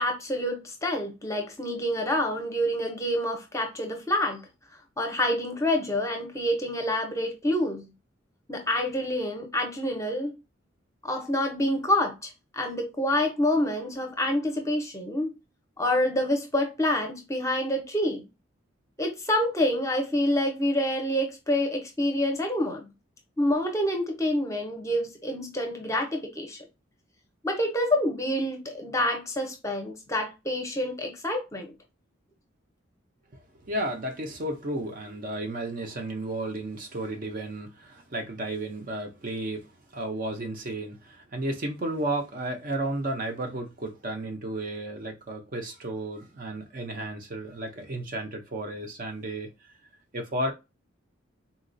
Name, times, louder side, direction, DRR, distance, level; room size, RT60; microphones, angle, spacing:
voice 1, 0.0-4.4 5.0-7.9 8.5-10.4 11.0-15.3 15.8-18.3 19.0-22.9 23.4-26.6 27.4-31.7, left 1 dB, 15° left, 0.7 m, -27 dB
voice 2, 33.6-49.5 50.1-50.5, right 1 dB, 45° right, 0.6 m, -33 dB
3.9 x 2.3 x 2.5 m
head